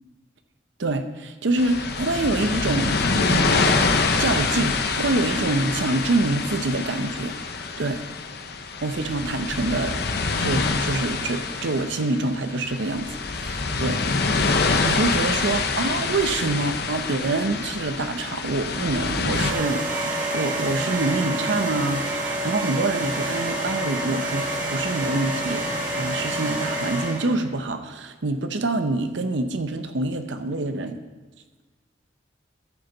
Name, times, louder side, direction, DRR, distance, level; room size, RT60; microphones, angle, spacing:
voice 1, 0.8-3.8 4.2-7.4 7.8-8.0 8.8-10.0 10.4-19.9 20.3-31.0, right 2 dB, 75° right, 8 dB, 0.7 m, -26 dB
sound 1, 1.6-19.5, left 4 dB, 60° left, 0.8 m, -26 dB
sound 2, 19.3-27.4, right 1 dB, 45° right, 1.9 m, -28 dB
14.0 x 6.6 x 3.9 m, 1.3 s
head